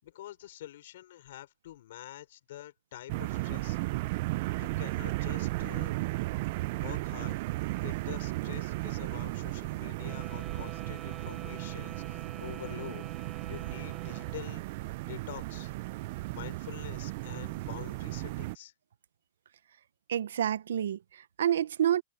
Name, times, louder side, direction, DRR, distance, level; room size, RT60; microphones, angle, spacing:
voice 1, 0.0-3.8 4.6-6.0 6.7-7.4 7.8-15.7 16.3-18.7, left 13 dB, 65° left, 5.9 m, -46 dB
sound 1, 3.1-18.6, right 20 dB, 45° right, 0.4 m, -35 dB
Wind instrument woodwind instrument, 9.9-14.5, right 7 dB, 15° right, 6.8 m, -48 dB
voice 2, 20.1-22.0, right 10 dB, 85° right, 0.7 m, -28 dB
supercardioid pair, 160°, 0 cm